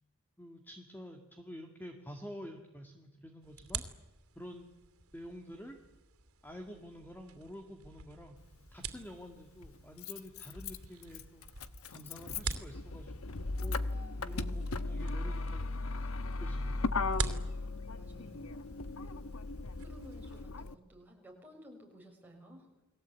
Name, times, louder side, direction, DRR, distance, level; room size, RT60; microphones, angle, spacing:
voice 1, 0.4-3.8 4.4-4.7 5.1-5.8 6.4-8.4 8.7-11.5 11.9-13.8 14.2-16.1 16.4-16.9, equal, 10° left, 4 dB, 2.0 m, -49 dB
sound 1, 3.4-20.4, right 5 dB, 90° right, 2.7 m, -46 dB
Motor vehicle (road), 8.4-8.5 9.6-20.7, left 3 dB, 80° left, 1.1 m, -37 dB
voice 2, 13.8-14.6 17.3-18.5 19.0-19.3 19.8-22.7, equal, 10° right, 0 dB, 6.1 m, -56 dB
30.0 x 21.0 x 8.4 m, 1.0 s
head